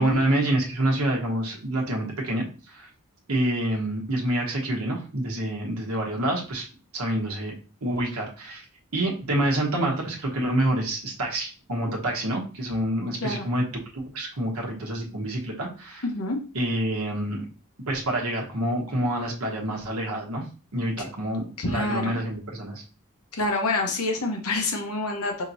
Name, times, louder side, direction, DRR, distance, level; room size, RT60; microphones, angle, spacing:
voice 1, 0.0-2.9 3.3-6.7 6.9-7.5 7.8-8.6 8.9-13.7 13.9-16.0 16.5-17.5 17.9-20.4 20.7-22.8, right 1 dB, 85° right, -1 dB, 1.1 m, -27 dB
voice 2, 16.0-16.4 21.0-21.1 21.6-22.2 23.3-25.4, left 2 dB, 85° left, 3 dB, 1.0 m, -27 dB
5.1 x 2.9 x 2.6 m, 0.35 s
head